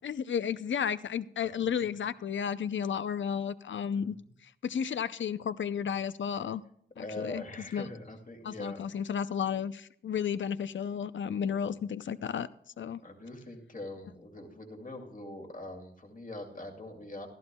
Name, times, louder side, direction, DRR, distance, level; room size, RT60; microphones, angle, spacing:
voice 1, 0.0-4.2 4.4-6.6 7.0-7.4 7.7-7.8 8.4-12.5 12.8-13.0, left 7 dB, 75° left, 15 dB, 0.5 m, -33 dB
voice 2, 3.9-4.3 7.0-9.1 11.4-11.8 13.0-17.3, left 2 dB, 40° left, 2 dB, 2.4 m, -43 dB
15.5 x 14.0 x 2.3 m, 0.66 s
wide cardioid pair, 140°, 20 cm